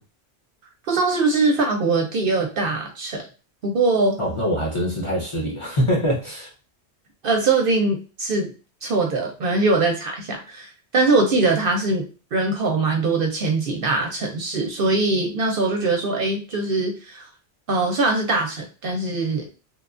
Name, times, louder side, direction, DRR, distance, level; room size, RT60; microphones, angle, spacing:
voice 1, 0.9-3.3 3.6-4.2 7.2-8.5 8.8-12.1 12.3-17.3 17.7-19.5, right 3 dB, 60° right, 2 dB, 0.7 m, -22 dB
voice 2, 4.2-6.5, equal, 30° left, -3 dB, 0.7 m, -24 dB
2.9 x 2.2 x 2.4 m, 0.34 s
omnidirectional pair, 1.1 m